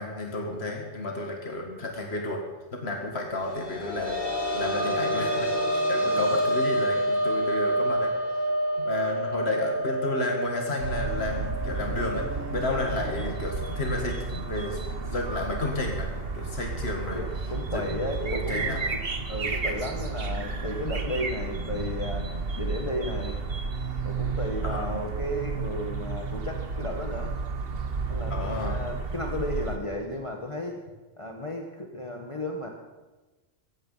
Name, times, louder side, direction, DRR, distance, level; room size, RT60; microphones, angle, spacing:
voice 1, 0.0-2.4 2.7-8.1 8.8-12.2 12.5-16.1 16.3-17.2 17.7-18.0 18.3-18.8 24.6-25.0 28.3-28.8, left 2 dB, 75° left, 1 dB, 2.3 m, -32 dB
sound 1, 3.4-14.9 15.2-15.3 16.9-17.0, equal, 45° left, 2.9 m, -29 dB
voice 2, 6.0-6.4 17.1-19.0 19.3-22.3 22.6-23.4 24.0-27.3 28.1-30.8 31.2-32.7, equal, 30° left, 1 dB, 1.6 m, -34 dB
sound 2, 10.8-29.8, right 4 dB, 60° right, 1.5 m, -32 dB
16.0 x 16.0 x 5.7 m, 1.2 s
omnidirectional pair, 1.1 m